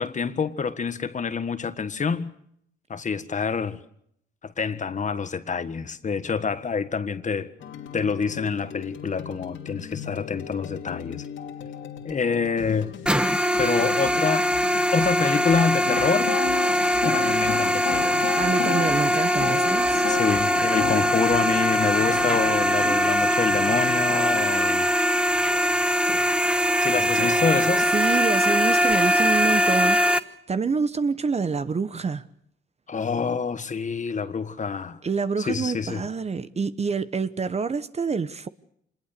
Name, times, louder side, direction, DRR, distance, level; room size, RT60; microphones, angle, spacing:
voice 1, 0.0-2.3 2.9-3.8 4.4-7.5 7.9-11.2 12.0-12.9 13.6-14.5 14.9-16.3 17.0-18.2 20.1-24.9 26.8-27.9 32.9-35.0 35.4-36.0, left 5 dB, 40° left, 1.5 m, -26 dB
sound 1, 7.6-24.1, left 8 dB, 70° left, 2.7 m, -39 dB
sound 2, 13.1-30.2, equal, 5° right, 1.2 m, -22 dB
sound 3, 15.8-27.9, left 10 dB, 85° left, 2.9 m, -35 dB
voice 2, 18.4-20.0 22.8-23.1 27.9-30.0 30.5-32.2 35.0-38.5, right 5 dB, 35° right, 1.0 m, -27 dB
26.0 x 20.5 x 6.8 m
cardioid pair, 90°, 20 cm